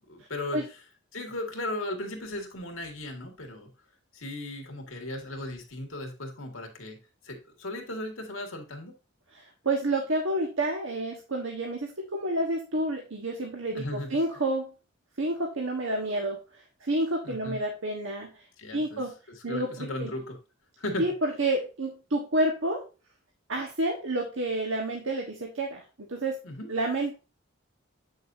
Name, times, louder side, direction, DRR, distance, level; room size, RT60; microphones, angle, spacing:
voice 1, 0.1-0.6 1.1-3.7 4.1-7.0 7.2-8.9 13.8-14.2 17.2-17.6 18.6-19.0 19.5-20.4 20.8-21.1 26.4-26.7, left 1 dB, 90° left, 3 dB, 2.0 m, -36 dB
voice 2, 9.3-14.7 15.2-18.4 18.7-19.1 19.4-20.1 21.0-22.8 23.5-25.8 26.1-26.4 26.7-27.2, right 1 dB, 80° right, 1 dB, 1.3 m, -29 dB
8.4 x 6.4 x 2.7 m, 0.32 s
head